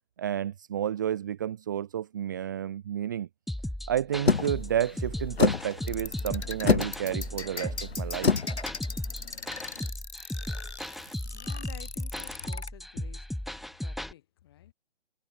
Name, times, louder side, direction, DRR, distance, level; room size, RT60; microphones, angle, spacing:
voice 1, 0.2-3.3 3.9-8.3, right 10 dB, 20° right, 1.2 m, -31 dB
sound 1, 3.5-14.1, left 1 dB, ahead, 0.3 m, -36 dB
sound 2, 4.3-9.9, left 5 dB, 65° left, 3.6 m, -29 dB
sound 3, 5.8-12.7, left 4 dB, 90° left, 6.8 m, -39 dB
voice 2, 11.3-13.3 13.8-14.7, left 13 dB, 20° left, 5.8 m, -49 dB
hypercardioid pair, 170°, 33 cm